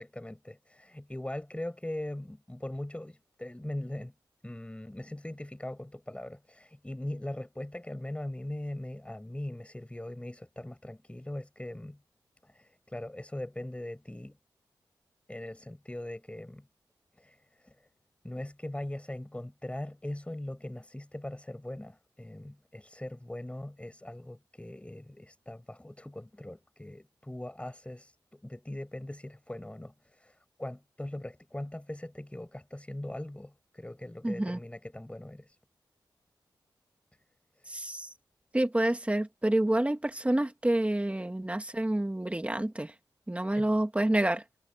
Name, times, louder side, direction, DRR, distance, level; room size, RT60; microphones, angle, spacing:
voice 1, 0.0-4.1 4.4-12.0 12.4-14.4 15.3-16.6 17.2-17.7 18.2-35.6 37.6-37.8 43.6-43.7, left 1 dB, 15° left, 7.6 m, -40 dB
voice 2, 34.2-34.6 37.7-38.1 38.5-42.9 43.3-44.4, right 1 dB, 15° right, 2.5 m, -28 dB
cardioid pair, 55°, 8 cm